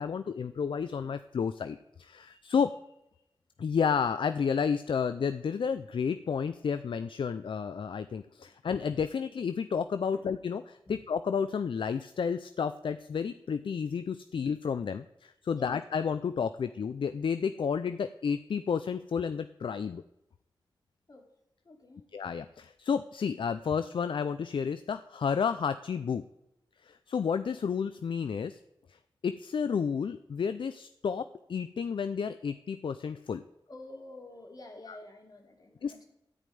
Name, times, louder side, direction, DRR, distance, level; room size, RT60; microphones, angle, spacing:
voice 1, 0.0-2.7 3.6-20.0 22.1-26.3 26.8-28.6 28.9-29.0 29.2-33.4 35.8-36.0, left 6 dB, 70° left, 11 dB, 0.5 m, -31 dB
voice 2, 21.6-22.1 33.7-36.1, left 2 dB, 45° left, 1 dB, 2.9 m, -49 dB
13.5 x 5.3 x 9.3 m, 0.86 s
wide cardioid pair, 80°, 9 cm